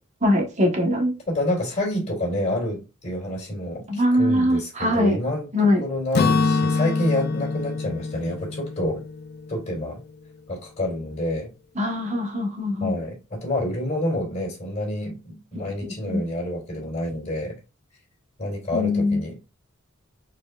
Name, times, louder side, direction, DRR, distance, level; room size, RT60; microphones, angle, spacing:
voice 1, 0.2-1.1 3.9-5.2 5.5-5.8 11.8-12.9 15.5-15.6 16.1-16.2 18.7-19.2, left 1 dB, 35° right, 1 dB, 1.3 m, -22 dB
voice 2, 1.3-5.5 5.8-9.0 9.5-10.0 10.5-11.5 12.8-17.5 18.4-19.3, left 1 dB, 35° left, -2 dB, 2.7 m, -28 dB
Acoustic guitar / Strum, 6.1-10.1, left 4 dB, 50° left, 0.4 m, -25 dB
4.9 x 4.2 x 2.4 m, 0.30 s
head